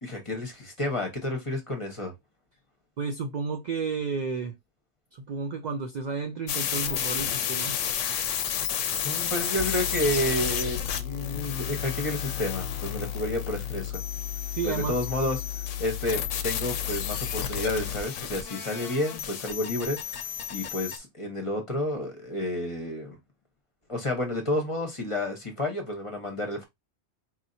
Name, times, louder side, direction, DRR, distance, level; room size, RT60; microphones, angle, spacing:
voice 1, 0.0-2.1 9.0-14.0 14.6-15.4 15.8-20.0 20.5-23.2 23.9-26.6, left 1 dB, 30° left, 1.0 m, -30 dB
voice 2, 3.0-4.6 5.1-7.8 14.5-15.0, right 5 dB, 75° right, 0.4 m, -32 dB
sound 1, 6.5-21.0, left 9 dB, 85° left, 1.0 m, -32 dB
sound 2, 9.6-18.0, left 12 dB, 55° left, 0.6 m, -35 dB
4.3 x 2.7 x 2.6 m
omnidirectional pair, 1.3 m